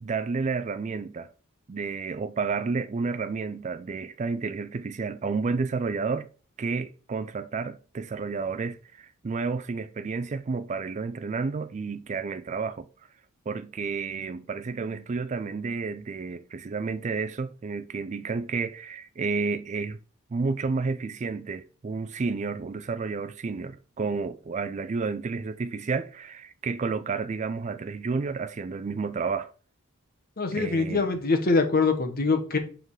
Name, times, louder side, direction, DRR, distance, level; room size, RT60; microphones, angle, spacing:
voice 1, 0.0-1.3 1.7-6.3 6.6-12.9 13.5-20.0 20.3-29.5 30.5-31.0, right 4 dB, 30° right, 0.3 m, -31 dB
voice 2, 30.4-32.6, left 4 dB, 45° left, 1.2 m, -24 dB
7.6 x 3.8 x 4.8 m
head